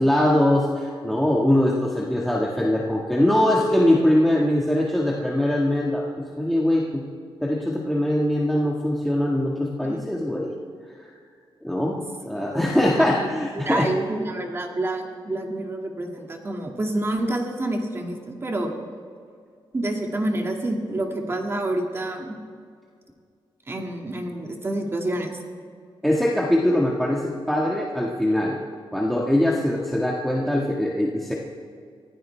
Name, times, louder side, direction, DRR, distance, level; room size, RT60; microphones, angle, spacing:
voice 1, 0.0-7.0 7.4-10.5 11.0-11.1 11.6-13.9 26.0-28.6 28.9-31.3, left 1 dB, ahead, -4 dB, 1.7 m, -22 dB
voice 2, 12.9-18.7 19.7-22.4 23.7-25.4, right 1 dB, 25° right, 2 dB, 2.2 m, -28 dB
24.5 x 16.0 x 3.4 m, 2.2 s
wide cardioid pair, 125°, 9 cm